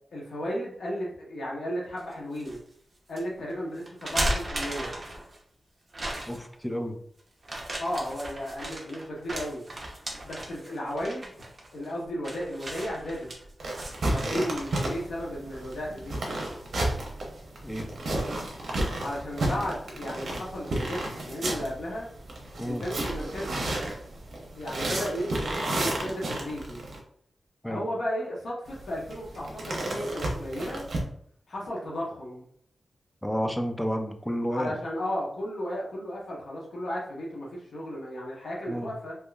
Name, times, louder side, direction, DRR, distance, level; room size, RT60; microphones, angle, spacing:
voice 1, 0.1-2.6 3.1-4.9 7.8-9.6 10.2-11.4 11.7-13.3 14.1-16.2 19.0-22.1 22.6-23.7 24.6-26.8 27.7-30.8 31.5-32.5 34.5-39.2, equal, 90° left, -4 dB, 1.2 m, -34 dB
sound 1, 2.0-2.6 3.1-3.2 3.9-5.4 5.9-6.5 7.4-14.9, right 1 dB, 40° right, 0.8 m, -35 dB
voice 2, 6.3-7.0 17.6-17.9 22.6-22.8 27.6-27.8 33.2-34.8 38.7-38.9, equal, 5° left, 5 dB, 0.4 m, -31 dB
sound 2, 13.6-27.0 28.7-31.0, right 1 dB, 65° right, 0.8 m, -32 dB
3.6 x 2.9 x 2.4 m, 0.63 s
wide cardioid pair, 135°, 0 cm